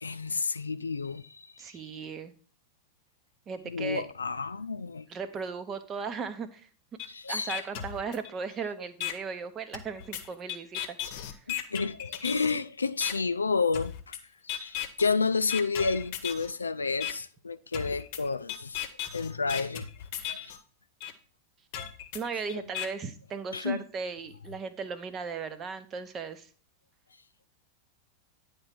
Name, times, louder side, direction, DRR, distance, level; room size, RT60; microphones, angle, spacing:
voice 1, 0.0-1.5 3.7-5.1 7.1-7.6 11.0-11.1 11.5-14.2 14.4-18.8 19.1-19.9 20.3-20.6 22.5-22.6 23.5-23.8, left 4 dB, 75° left, 0.4 m, -30 dB
voice 2, 1.6-2.3 3.5-4.0 5.1-6.7 7.3-11.4 22.1-26.5, right 5 dB, 25° right, 0.8 m, -37 dB
sound 1, 7.0-7.1 7.5-8.5 9.0-9.1 9.7-12.6 13.0-13.1 13.7-14.2 14.5-15.1 15.5-16.5 17.0-17.1 17.7-20.6 21.0-21.1 21.7-22.9, left 11 dB, 45° left, 0.9 m, -36 dB
9.8 x 3.4 x 5.9 m
figure-of-eight pair, 90°, 0 cm